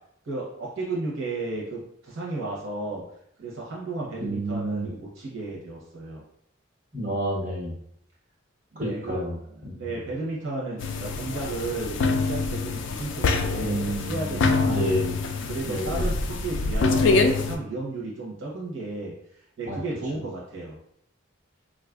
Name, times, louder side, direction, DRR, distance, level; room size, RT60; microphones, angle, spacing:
voice 1, 0.2-3.0 3.4-6.2 8.7-9.2 9.7-14.9 15.5-19.1 19.6-20.8, right 2 dB, 80° right, -4 dB, 0.7 m, -33 dB
voice 2, 4.2-4.9 6.9-7.7 8.8-10.0 13.6-15.2 15.6-16.0 19.7-19.8, right 1 dB, 40° right, -5 dB, 1.2 m, -30 dB
sound 1, 10.8-17.6, left 3 dB, 65° left, 0.3 m, -25 dB
3.8 x 2.4 x 2.3 m, 0.72 s
head